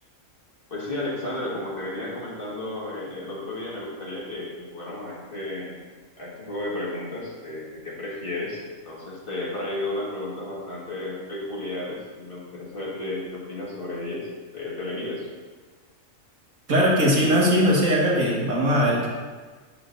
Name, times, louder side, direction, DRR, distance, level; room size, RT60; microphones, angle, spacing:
voice 1, 0.7-5.8 6.2-14.3 14.5-15.3, left 2 dB, 40° left, -6 dB, 1.8 m, -33 dB
voice 2, 16.7-19.1, equal, 75° right, -4 dB, 2.0 m, -20 dB
8.7 x 6.7 x 2.6 m, 1.4 s
omnidirectional pair, 1.4 m